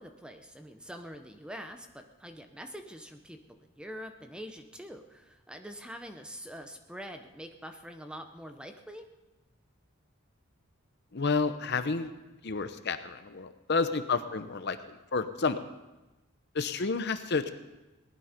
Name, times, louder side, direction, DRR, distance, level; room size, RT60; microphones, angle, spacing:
voice 1, 0.0-9.0, equal, 5° right, 6 dB, 0.8 m, -45 dB
voice 2, 11.1-12.1 12.4-15.6 16.5-17.5, left 4 dB, 50° left, 10 dB, 0.7 m, -30 dB
18.5 x 11.5 x 5.2 m, 1.1 s
head